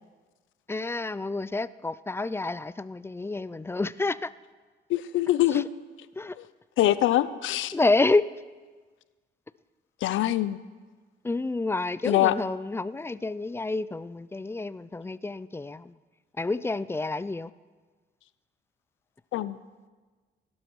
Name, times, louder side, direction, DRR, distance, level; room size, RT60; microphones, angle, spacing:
voice 1, 0.7-4.3 5.5-5.6 6.2-6.4 7.7-8.3 11.2-16.0 16.4-17.5, left 3 dB, 10° left, 18 dB, 0.4 m, -29 dB
voice 2, 4.9-5.7 6.8-7.7 10.0-10.6 12.0-12.3 19.3-19.6, left 14 dB, 80° left, 17 dB, 0.6 m, -24 dB
16.5 x 11.5 x 4.7 m, 1.4 s
cardioid pair, 90°, 20 cm